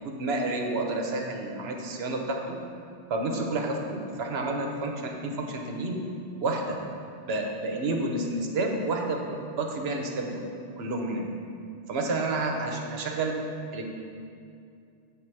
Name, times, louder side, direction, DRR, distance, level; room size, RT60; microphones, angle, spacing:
voice 1, 0.0-2.6 3.1-6.0 6.4-6.8 7.2-10.4 10.8-11.3 11.9-13.3 13.7-13.9, right 2 dB, 70° right, 2 dB, 0.9 m, -30 dB
7.4 x 3.4 x 4.5 m, 2.5 s
omnidirectional pair, 1.1 m